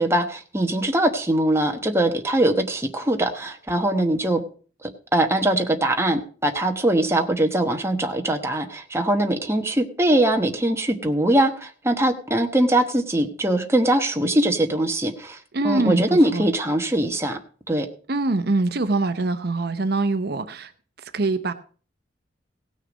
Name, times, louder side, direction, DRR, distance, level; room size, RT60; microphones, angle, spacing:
voice 1, 0.0-4.4 4.8-15.4 15.6-17.4 17.7-17.9, right 1 dB, 15° right, 1.1 m, -22 dB
voice 2, 15.5-16.5 18.1-20.7 21.0-21.5, right 2 dB, 60° right, 0.7 m, -24 dB
17.0 x 6.5 x 5.2 m
head